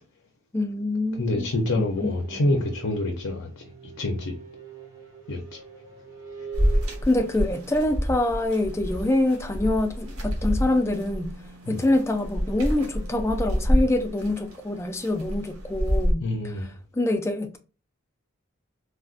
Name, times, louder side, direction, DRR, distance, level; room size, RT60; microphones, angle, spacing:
voice 1, 0.5-1.5 1.8-2.6 7.0-11.3 11.7-16.7 16.9-17.6, left 2 dB, 15° left, 0.3 m, -25 dB
sound 1, 0.8-15.4, right 5 dB, 20° right, 0.9 m, -46 dB
voice 2, 1.2-3.6 4.0-4.3 5.3-5.6 11.7-11.8 16.2-16.7, left 2 dB, 60° left, 0.5 m, -27 dB
sound 2, 6.5-16.1, equal, 80° right, 1.1 m, -28 dB
3.8 x 2.1 x 2.4 m
head